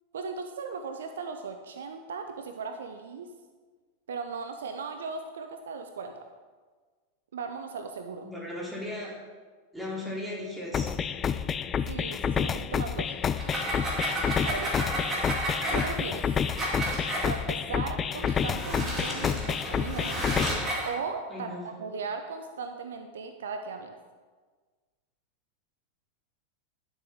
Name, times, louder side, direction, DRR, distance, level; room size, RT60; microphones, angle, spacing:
voice 1, 0.1-3.3 4.1-6.1 7.3-8.3 11.9-13.4 14.4-15.0 15.7-16.3 17.2-20.2 20.8-23.9, right 5 dB, 65° right, 7 dB, 0.6 m, -37 dB
voice 2, 8.2-9.1 9.7-10.9 21.3-21.6, left 1 dB, 5° right, -5 dB, 3.1 m, -36 dB
sound 1, 10.7-20.7, left 7 dB, 25° left, 0.3 m, -29 dB
sound 2, 13.3-17.3 18.2-20.9, right 1 dB, 20° right, 2.4 m, -32 dB
11.5 x 6.5 x 3.6 m, 1.4 s
figure-of-eight pair, 90°, 0 cm